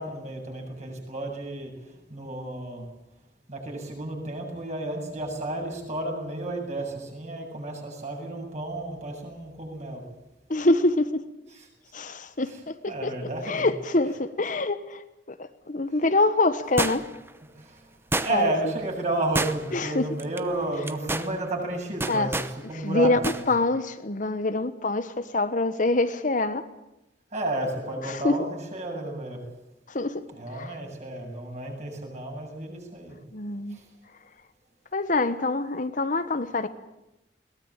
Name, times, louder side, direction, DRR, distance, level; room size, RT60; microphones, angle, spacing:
voice 1, 0.0-2.9 3.5-10.1 11.5-11.7 12.9-13.7 17.5-17.9 18.2-22.4 22.7-23.4 27.3-29.5 30.3-33.2 33.7-33.9, right 2 dB, 40° right, 1 dB, 7.7 m, -32 dB
voice 2, 10.5-11.2 11.9-13.1 13.4-17.1 18.3-18.5 19.7-20.1 22.1-22.3 22.7-23.2 23.5-26.7 28.0-28.5 29.9-30.2 30.5-30.7 33.3-33.8 34.9-36.7, left 2 dB, 45° left, 11 dB, 1.2 m, -25 dB
sound 1, 16.8-17.3 18.1-18.6 19.3-19.9 20.2-20.4 20.8-21.3 22.0-22.5 23.2-23.4 23.7-23.8, right 2 dB, 15° right, 1.0 m, -28 dB
22.0 x 19.0 x 8.9 m, 0.93 s
head